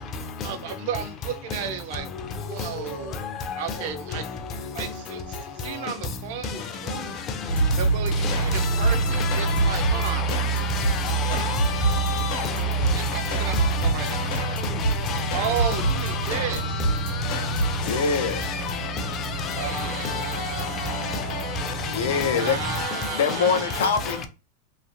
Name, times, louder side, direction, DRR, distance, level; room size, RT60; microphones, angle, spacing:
voice 1, 0.4-2.1 2.4-3.2 3.6-4.2 4.7-5.2 5.6-7.1 7.8-10.2 11.3-11.6 12.9-13.6 13.8-14.6 15.3-16.6 19.5-23.9, right 8 dB, 60° right, 0.5 m, -33 dB
sound 1, 7.5-22.9, right 3 dB, 70° left, 1.1 m, -26 dB
voice 2, 9.2-12.6 13.4-13.7 14.0-14.2 14.8-15.4 15.7-16.4 17.2-17.5 17.9-18.0 18.4-18.6 19.4-19.7 20.0-20.2 22.2-22.3 22.7-22.9 23.8-23.9, left 6 dB, 30° left, 0.5 m, -30 dB
voice 3, 17.8-18.5 21.9-22.6 23.0-24.3, left 5 dB, 90° left, 0.5 m, -24 dB
3.1 x 2.1 x 2.5 m
supercardioid pair, 140°, 0 cm